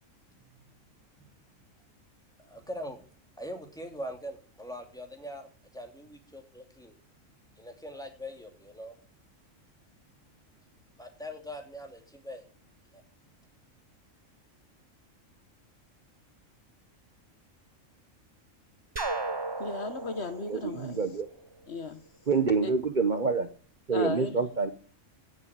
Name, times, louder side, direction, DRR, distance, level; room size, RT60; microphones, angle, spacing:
voice 1, 0.4-0.7 1.2-1.3 2.4-3.0 3.4-7.0 7.6-8.9 11.0-12.4 12.9-13.0, equal, 5° left, 3 dB, 2.7 m, -42 dB
sound 1, 19.0-21.8, right 3 dB, 20° right, 0.8 m, -35 dB
voice 2, 19.6-21.0 21.7-22.0 22.6-22.7 23.9-24.4, left 3 dB, 55° left, 10 dB, 1.4 m, -35 dB
voice 3, 20.5-21.3 22.3-23.5 23.9-24.7, right 5 dB, 40° right, 8 dB, 1.1 m, -27 dB
16.5 x 7.2 x 8.8 m, 0.43 s
omnidirectional pair, 1.4 m